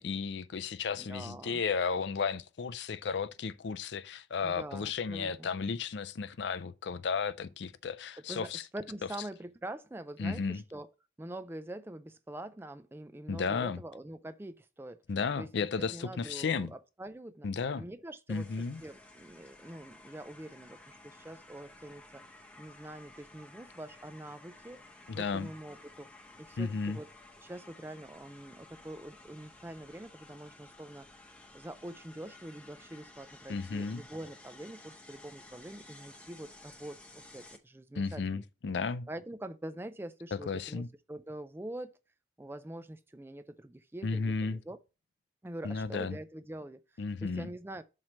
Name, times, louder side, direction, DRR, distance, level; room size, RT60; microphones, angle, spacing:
voice 1, 0.0-8.6 10.2-10.6 13.3-13.8 15.1-16.7 17.4-17.8 18.3-18.8 25.1-25.5 26.6-27.0 33.5-34.0 38.0-39.1 40.3-40.9 44.0-44.6 45.6-46.2 47.0-47.5, left 5 dB, 65° left, 0.4 m, -34 dB
voice 2, 1.0-1.6 4.4-5.5 8.2-10.9 11.2-15.0 15.4-17.5 17.7-22.2 22.6-24.8 25.1-26.1 26.4-27.1 27.4-38.4 39.1-41.9 42.4-44.8 45.4-47.8, right 1 dB, 10° right, 0.3 m, -45 dB
sound 1, 18.3-37.6, left 2 dB, 5° left, 0.7 m, -55 dB
7.4 x 3.1 x 6.2 m
head